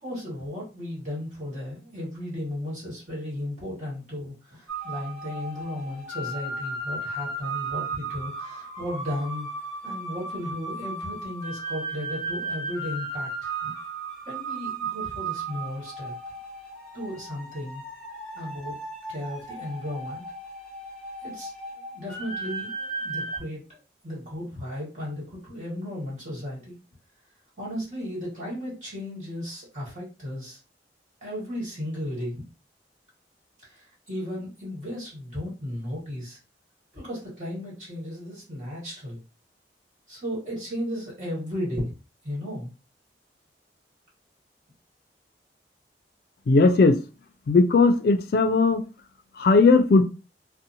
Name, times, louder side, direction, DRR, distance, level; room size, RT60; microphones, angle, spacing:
voice 1, 0.0-9.5 9.8-13.7 14.2-16.1 16.9-17.8 18.3-18.8 19.1-20.2 21.2-21.5 21.9-26.8 27.6-30.6 31.2-32.4 33.6-36.4 36.9-39.2 40.1-41.9 42.2-42.7, left 1 dB, 45° right, -5 dB, 1.5 m, -35 dB
sound 1, 4.7-23.4, right 3 dB, 5° left, 0.9 m, -35 dB
voice 2, 46.5-47.0 47.5-48.8 49.4-50.0, left 3 dB, 60° left, 7 dB, 0.3 m, -18 dB
2.7 x 2.1 x 2.6 m, 0.31 s
head